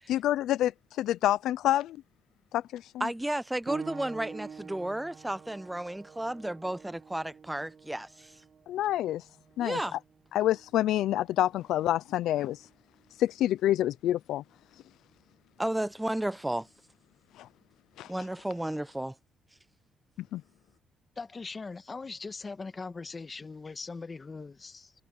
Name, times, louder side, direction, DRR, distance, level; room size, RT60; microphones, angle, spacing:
voice 1, 0.1-0.7 1.0-2.0 2.5-3.1 8.7-9.2 9.6-10.0 10.3-12.6 13.2-14.4 17.4-17.5 18.0-18.1 20.3-20.4, left 13 dB, 85° left, 0.4 m, -27 dB
voice 2, 3.0-8.4 9.6-10.0 15.6-16.7 18.1-19.2, right 1 dB, 10° right, 0.3 m, -33 dB
sound 1, 3.7-13.9 14.8-15.0 15.7-15.8, right 6 dB, 50° right, 1.2 m, -48 dB
voice 3, 21.2-24.9, left 4 dB, 30° left, 1.6 m, -40 dB
cardioid pair, 90°, 0 cm